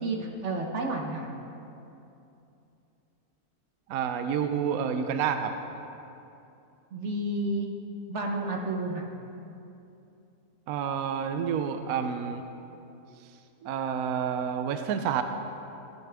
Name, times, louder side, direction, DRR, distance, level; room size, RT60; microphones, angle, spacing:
voice 1, 0.0-1.3 6.9-7.7 8.1-9.1, right 2 dB, 50° right, 2 dB, 1.2 m, -31 dB
voice 2, 3.9-5.5 10.7-12.4 13.6-15.2, right 7 dB, 75° right, 8 dB, 1.0 m, -29 dB
15.5 x 11.0 x 3.5 m, 2.8 s
omnidirectional pair, 1.6 m